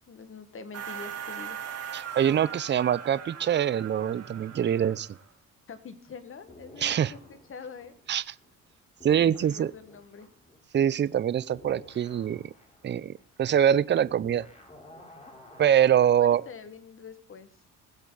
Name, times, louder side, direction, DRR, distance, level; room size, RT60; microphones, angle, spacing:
voice 1, 0.1-1.6 5.7-8.0 9.1-10.3 16.2-17.5, left 5 dB, 45° left, 11 dB, 1.7 m, -45 dB
sound 1, 0.7-5.3, right 8 dB, 55° right, 2.5 m, -40 dB
voice 2, 1.9-5.1 6.8-7.1 8.1-8.3 9.0-9.7 10.7-12.5 12.8-13.1 13.4-14.5 15.6-16.4, right 9 dB, 35° right, 19 dB, 0.5 m, -24 dB
sound 2, 6.5-8.7 9.0-16.6, left 1 dB, 20° left, 4.1 m, -52 dB
19.5 x 8.0 x 4.0 m, 0.42 s
cardioid pair, 90°, 30 cm